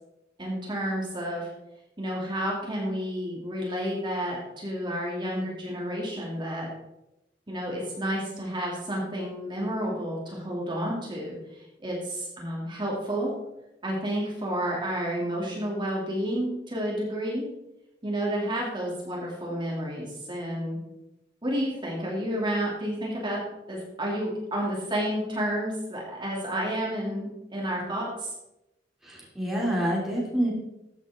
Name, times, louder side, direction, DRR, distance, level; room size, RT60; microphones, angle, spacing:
voice 1, 0.4-1.5 2.0-6.7 7.5-13.3 13.8-17.5 18.0-20.8 21.4-28.3, equal, 25° right, -3 dB, 2.8 m, -30 dB
voice 2, 29.0-30.5, equal, ahead, -4 dB, 2.9 m, -27 dB
14.5 x 8.1 x 3.7 m, 0.90 s
head